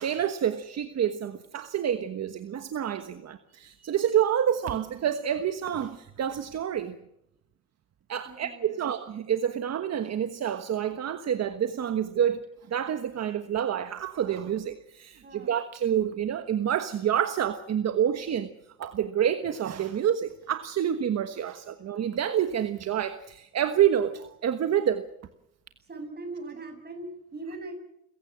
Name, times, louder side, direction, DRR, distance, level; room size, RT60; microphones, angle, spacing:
voice 1, 0.0-7.0 8.1-12.4 12.7-18.5 18.8-25.0, right 9 dB, 60° right, 1.3 m, -28 dB
voice 2, 8.3-8.7 15.2-15.5 25.9-27.7, right 2 dB, 35° right, 7.2 m, -40 dB
29.5 x 16.5 x 7.5 m
cardioid pair, 90°, 30 cm